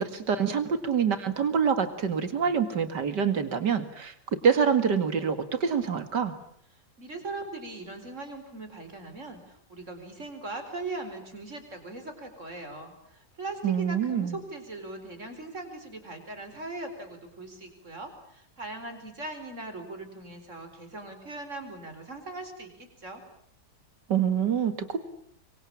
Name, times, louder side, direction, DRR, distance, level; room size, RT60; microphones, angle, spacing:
voice 1, 0.0-4.1 4.4-6.3 13.6-14.4 24.1-25.0, right 7 dB, 85° right, 10 dB, 2.7 m, -26 dB
voice 2, 7.0-23.2, right 2 dB, 45° right, 6 dB, 4.8 m, -40 dB
25.5 x 24.0 x 8.7 m, 0.67 s
omnidirectional pair, 1.8 m